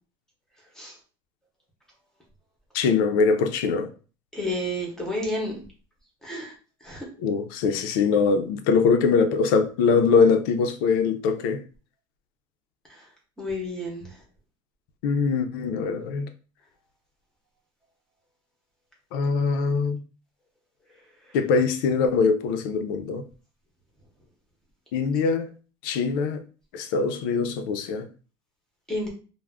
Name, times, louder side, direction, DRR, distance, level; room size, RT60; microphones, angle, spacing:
voice 1, 2.7-3.9 7.2-11.6 15.0-16.3 19.1-20.0 21.3-23.2 24.9-25.5 25.8-26.4 26.7-28.1, left 5 dB, 75° left, 0.4 m, -22 dB
voice 2, 4.3-5.6 6.2-6.5 6.8-7.1 12.9-13.0 13.4-14.1 28.9-29.1, left 1 dB, 5° left, 0.7 m, -30 dB
2.3 x 2.0 x 3.4 m
cardioid pair, 175°, 11 cm